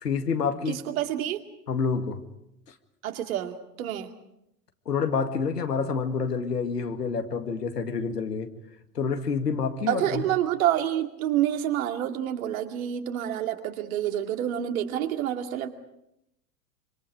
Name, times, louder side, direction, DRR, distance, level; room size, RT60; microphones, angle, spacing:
voice 1, 0.0-0.8 1.7-2.2 4.9-8.5 8.9-10.2, left 5 dB, 75° left, 7 dB, 2.1 m, -28 dB
voice 2, 0.7-1.4 3.0-4.1 9.9-15.7, right 11 dB, 60° right, 5 dB, 2.5 m, -28 dB
26.5 x 25.5 x 5.1 m, 0.81 s
figure-of-eight pair, 85°, 48 cm